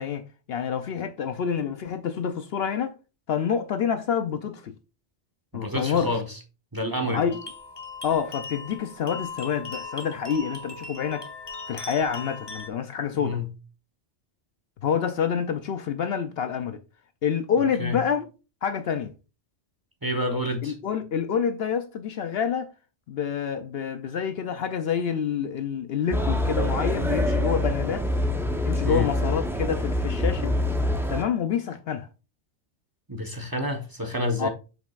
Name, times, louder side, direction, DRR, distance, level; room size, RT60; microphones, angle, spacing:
voice 1, 0.0-2.9 3.3-4.7 5.5-6.2 7.1-7.4 8.0-11.3 11.7-13.4 14.8-16.8 17.2-18.3 18.6-19.1 20.6-22.7 23.1-28.0 28.6-30.5 31.1-32.1 34.4-34.5, left 7 dB, 65° left, 0.7 m, -27 dB
voice 2, 5.5-6.4 6.7-7.2 13.2-13.5 17.8-18.0 20.0-20.7 28.8-29.1 33.1-34.5, left 1 dB, 20° right, 1.0 m, -28 dB
sound 1, 7.3-12.7, left 3 dB, 25° left, 0.7 m, -39 dB
sound 2, 26.1-31.2, left 1 dB, 5° right, 0.5 m, -25 dB
7.5 x 5.6 x 2.4 m
omnidirectional pair, 1.2 m